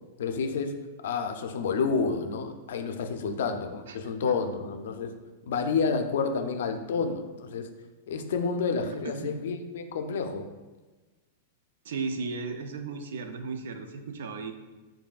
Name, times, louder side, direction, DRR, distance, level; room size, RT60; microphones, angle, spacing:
voice 1, 0.2-0.8 1.0-5.1 5.4-7.7 8.1-10.5, left 5 dB, 75° left, 7 dB, 0.4 m, -29 dB
voice 2, 8.9-9.3 11.8-14.5, right 4 dB, 80° right, 7 dB, 0.4 m, -35 dB
5.0 x 2.6 x 2.3 m, 1.2 s
hypercardioid pair, 135°, 0 cm